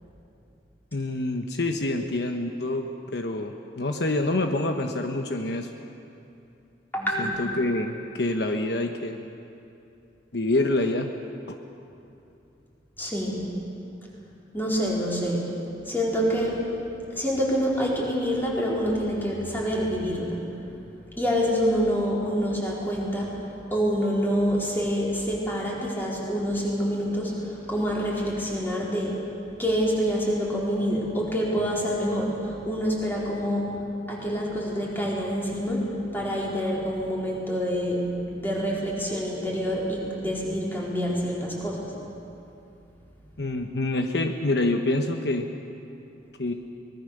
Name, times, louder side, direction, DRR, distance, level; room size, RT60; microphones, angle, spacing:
voice 1, 0.9-5.7 7.2-9.2 10.3-11.1 11.5-11.6 43.4-45.5 46.4-46.5, left 2 dB, 65° left, 4 dB, 1.0 m, -26 dB
voice 2, 6.9-7.4 13.0-13.4 14.5-15.4 15.9-16.6 17.1-20.4 21.2-23.3 23.7-29.2 29.6-33.7 34.1-38.0 38.3-41.9, equal, 10° left, -5 dB, 4.4 m, -26 dB
24.0 x 20.0 x 6.6 m, 2.8 s
head